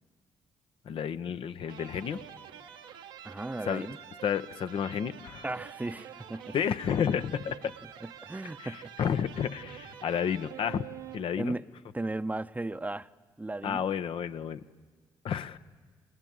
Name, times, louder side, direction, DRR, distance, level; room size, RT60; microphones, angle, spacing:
voice 1, 0.8-2.2 3.6-3.9 4.2-5.4 6.5-7.7 8.6-10.9 11.1-11.6 13.6-14.6 15.2-15.6, left 8 dB, 60° left, 11 dB, 1.0 m, -31 dB
sound 1, 1.6-11.6, right 9 dB, 85° right, 1.5 m, -47 dB
voice 2, 3.2-4.0 5.4-6.5 8.0-8.9 11.4-11.6 11.9-13.1 13.4-13.9, right 2 dB, 15° right, 13 dB, 0.9 m, -36 dB
30.0 x 20.0 x 9.5 m, 1.5 s
hypercardioid pair, 45°, 10 cm